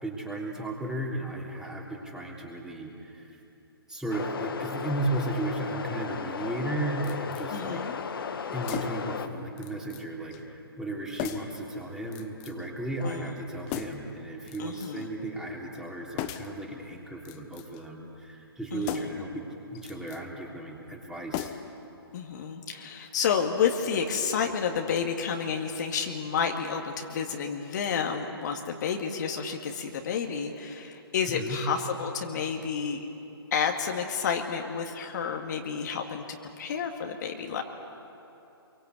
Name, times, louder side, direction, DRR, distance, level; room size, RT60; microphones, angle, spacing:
voice 1, 0.0-3.4 3.9-7.8 8.5-19.4 19.7-21.5 31.3-31.6, right 1 dB, 5° right, -2 dB, 3.4 m, -35 dB
sound 1, 4.1-9.3, left 6 dB, 60° left, 1.7 m, -35 dB
sound 2, 7.0-7.5 8.6-9.1 9.6-10.1 10.3-10.4 11.2-11.6 12.1-12.7 13.7-14.1 14.5-15.1 16.2-16.6 17.2-17.9 18.8-19.3 19.7-20.2 21.3-21.8 22.1-22.2, left 12 dB, 25° left, 1.2 m, -37 dB
voice 2, 7.5-8.0 13.0-13.3 14.6-15.1 18.7-19.1 22.1-33.1 33.5-36.2 36.6-37.6, left 6 dB, 45° left, 3 dB, 2.0 m, -30 dB
26.5 x 23.5 x 8.3 m, 2.9 s
figure-of-eight pair, 135°, 13 cm